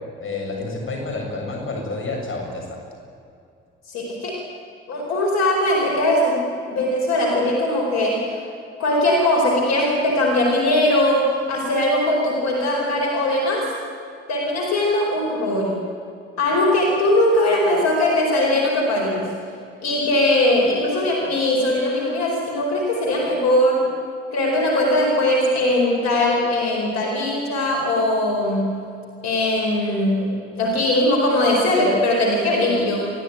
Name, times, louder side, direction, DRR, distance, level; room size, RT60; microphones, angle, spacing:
voice 1, 0.2-2.8, left 3 dB, 40° left, 1 dB, 7.0 m, -29 dB
voice 2, 3.9-4.4 4.9-6.4 6.7-8.4 8.8-13.7 14.3-15.8 16.4-19.3 19.8-23.9 24.3-28.7 29.2-33.1, left 1 dB, 55° left, -1 dB, 4.6 m, -20 dB
29.5 x 12.5 x 9.3 m, 2.5 s
figure-of-eight pair, 45°, 31 cm